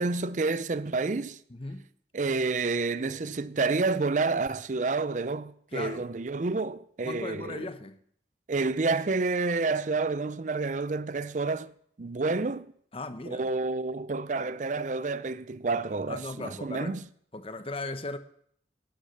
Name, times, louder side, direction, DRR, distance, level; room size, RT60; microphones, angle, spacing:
voice 1, 0.0-1.4 2.1-7.7 8.5-11.7 12.0-12.7 13.3-17.0, right 3 dB, 45° right, 0.5 m, -29 dB
voice 2, 1.5-1.9 5.7-6.1 7.0-8.0 12.9-13.5 16.1-17.0 17.3-18.2, left 2 dB, 30° left, 0.9 m, -37 dB
11.5 x 9.9 x 6.9 m
head